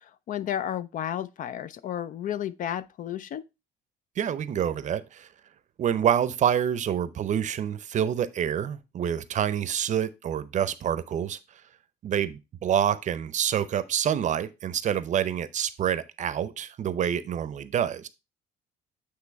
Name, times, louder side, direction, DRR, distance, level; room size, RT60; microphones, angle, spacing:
voice 1, 0.3-3.4, left 10 dB, 50° left, 0.5 m, -32 dB
voice 2, 4.2-5.3 5.8-11.4 12.0-18.1, right 9 dB, 45° right, 0.6 m, -27 dB
8.4 x 3.0 x 4.6 m
cardioid pair, 110°, 17 cm